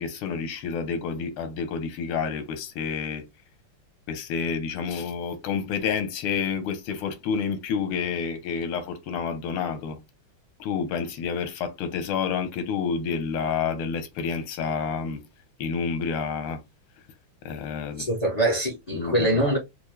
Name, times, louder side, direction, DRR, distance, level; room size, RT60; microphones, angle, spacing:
voice 1, 0.0-3.2 4.1-10.0 10.6-15.2 15.6-16.6 17.4-18.1 18.9-19.5, left 6 dB, 90° left, 1.7 m, -29 dB
voice 2, 18.0-19.6, right 1 dB, 40° left, 0.6 m, -23 dB
4.5 x 2.2 x 3.1 m
omnidirectional pair, 2.3 m